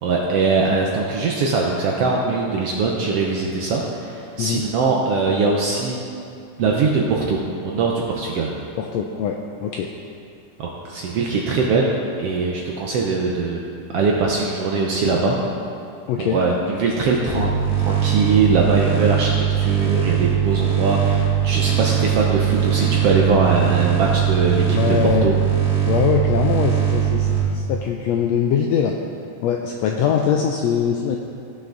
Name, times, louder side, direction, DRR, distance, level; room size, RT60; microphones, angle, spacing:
voice 1, 0.0-6.0 6.6-8.5 10.6-11.9 12.2-13.6 13.9-15.4 16.2-17.5 17.8-25.3, right 4 dB, 70° right, -1 dB, 1.4 m, -21 dB
voice 2, 8.8-9.4 9.6-9.9 16.1-16.4 24.7-25.3 25.9-28.9 29.4-31.2, left 8 dB, 85° left, 1 dB, 1.5 m, -22 dB
sound 1, 17.3-27.4, right 9 dB, ahead, 1.8 m, -20 dB
16.0 x 5.8 x 3.9 m, 2.5 s
omnidirectional pair, 3.5 m